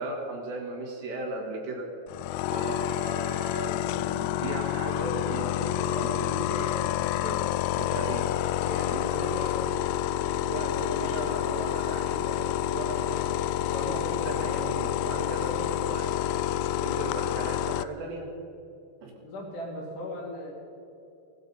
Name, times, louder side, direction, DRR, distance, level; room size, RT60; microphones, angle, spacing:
voice 1, 0.0-1.9 2.5-7.4 7.8-8.4 8.6-9.8 10.5-13.4 13.7-16.2 16.8-18.3 19.0-19.1, right 2 dB, 65° right, 0 dB, 3.9 m, -36 dB
sound 1, 2.1-17.8, left 12 dB, 90° left, 3.2 m, -28 dB
voice 2, 19.1-20.5, left 1 dB, 60° left, -3 dB, 4.6 m, -37 dB
18.0 x 12.5 x 5.5 m, 2.8 s
omnidirectional pair, 5.7 m